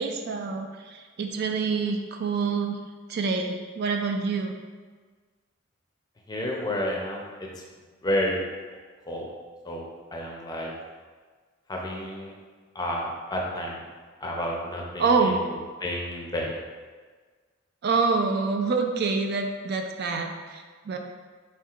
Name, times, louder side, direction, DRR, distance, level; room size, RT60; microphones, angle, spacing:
voice 1, 0.0-2.8 3.1-4.5 15.0-15.4 17.8-21.0, right 4 dB, 55° right, 4 dB, 0.3 m, -26 dB
voice 2, 6.3-7.2 8.0-8.4 9.1-9.3 9.6-10.7 11.7-12.3 12.7-13.8 14.2-16.5, left 1 dB, 20° left, -1 dB, 0.5 m, -30 dB
4.5 x 3.5 x 2.4 m, 1.5 s
head